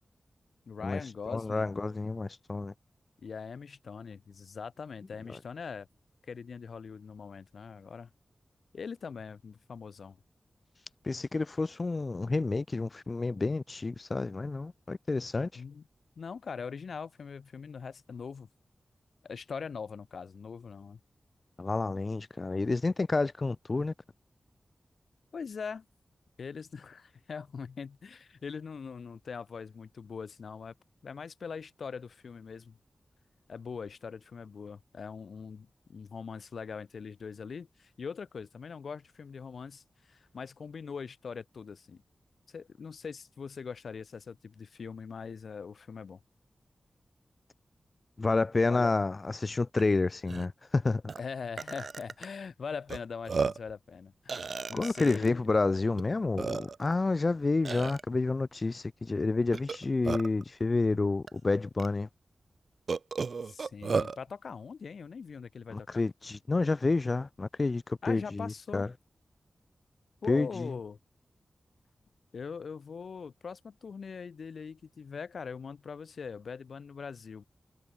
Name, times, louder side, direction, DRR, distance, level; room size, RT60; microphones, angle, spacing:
voice 1, 0.7-1.7 3.2-5.9 6.3-8.1 8.7-10.2 15.6-15.8 16.2-18.5 19.2-21.0 25.3-25.9 26.4-30.7 31.0-32.8 33.5-42.0 42.5-46.2 48.7-48.9 51.2-55.4 63.4-66.0 68.0-68.9 70.2-71.0 72.3-77.4, left 5 dB, 85° left, 1.9 m, -42 dB
voice 2, 1.3-2.7 11.0-15.6 21.6-23.9 48.2-51.0 54.7-62.1 65.7-68.9 70.3-70.7, left 3 dB, 40° left, 1.0 m, -29 dB
Burping eructation, 49.8-49.9 50.2-50.5 51.1-51.2 51.6-52.3 52.9-53.0 53.3-53.7 54.3-55.3 56.0-56.1 56.4-56.9 57.6-58.0 59.5-60.4 61.3-61.4 61.8-61.9 62.9-64.2, right 4 dB, 65° right, 1.1 m, -33 dB
wide cardioid pair, 80°, 0 cm